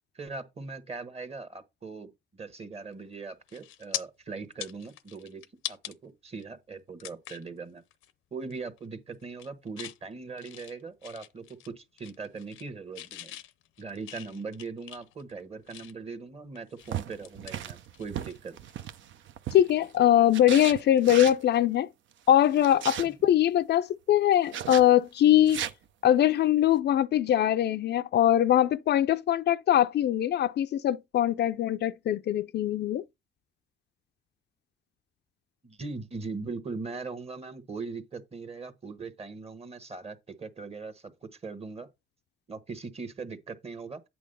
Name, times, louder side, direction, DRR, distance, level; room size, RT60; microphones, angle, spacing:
voice 1, 0.1-7.8 8.3-13.4 13.8-18.6 35.6-41.9 42.5-44.0, right 4 dB, 30° right, 1.2 m, -40 dB
sound 1, 2.9-3.1 3.5-4.0 4.4-5.9 6.4-6.5 7.0-7.5 7.9-8.1 8.4-8.9 9.2-10.0 10.4-11.7 12.0-12.7 12.9-16.1 16.5-18.4 18.7-18.9 20.7-20.9, left 13 dB, 90° left, 0.7 m, -42 dB
sound 2, 16.9-19.9 20.3-21.4 22.4-23.1 24.5-24.9 25.4-25.7, right 10 dB, 70° right, 0.7 m, -36 dB
voice 2, 19.5-21.9 22.3-25.6 26.0-33.0, left 11 dB, 60° left, 0.4 m, -22 dB
8.5 x 3.5 x 5.4 m
cardioid pair, 90°, 20 cm